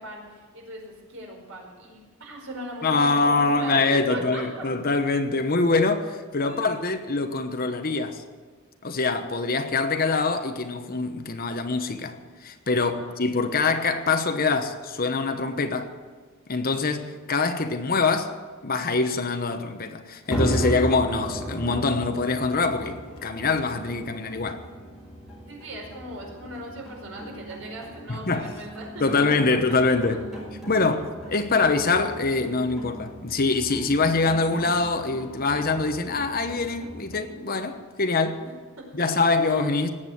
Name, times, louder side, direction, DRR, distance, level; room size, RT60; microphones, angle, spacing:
voice 1, 0.0-4.6 6.5-6.9 12.8-13.2 25.5-30.2 30.7-30.9 39.4-39.7, right 1 dB, 70° right, 5.0 m, -39 dB
voice 2, 2.8-8.2 8.8-15.9 16.5-18.4 18.6-24.6 28.1-28.5 29.0-30.3 30.7-38.4 38.9-39.9, left 3 dB, 45° left, 1.1 m, -24 dB
sound 1, 20.3-37.2, right 1 dB, ahead, 6.3 m, -37 dB
18.5 x 8.3 x 9.3 m
head